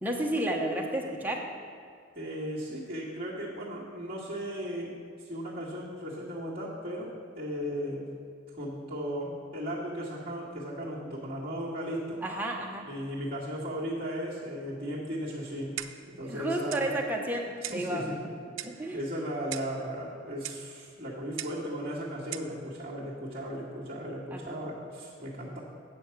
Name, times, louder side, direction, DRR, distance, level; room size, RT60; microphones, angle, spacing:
voice 1, 0.0-1.4 12.2-12.9 16.2-18.1 18.6-19.0 24.3-24.6, right 1 dB, 10° right, 0 dB, 0.9 m, -32 dB
voice 2, 2.2-8.1 8.5-12.2 12.8-15.8 16.1-16.9 17.6-18.2 18.6-25.6, equal, 25° right, -10 dB, 1.9 m, -36 dB
Clock, 15.8-16.1 16.7-16.9 17.6-17.9 18.6-18.8 19.5-19.8 20.4-20.7 21.4-21.6 22.3-22.5, right 12 dB, 70° right, 0.5 m, -39 dB
8.5 x 7.3 x 5.9 m, 2.3 s
head